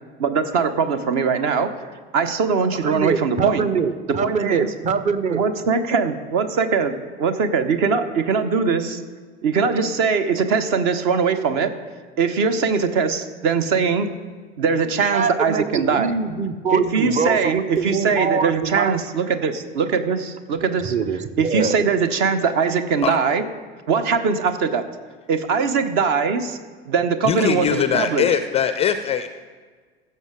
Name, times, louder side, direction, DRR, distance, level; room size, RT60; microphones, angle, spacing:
voice 1, 0.2-1.9 2.1-3.7 4.1-4.7 5.3-9.0 9.4-11.7 12.2-14.1 14.6-16.1 16.7-20.9 21.4-23.5 23.9-24.9 25.3-26.6 26.9-28.3, right 5 dB, 45° right, 10 dB, 0.9 m, -21 dB
voice 2, 2.8-5.4 15.1-19.0 20.5-21.8, right 5 dB, 25° right, 11 dB, 0.7 m, -24 dB
voice 3, 27.3-29.3, left 8 dB, 20° left, 10 dB, 0.4 m, -21 dB
15.5 x 6.6 x 3.7 m, 1.5 s
figure-of-eight pair, 75°, 31 cm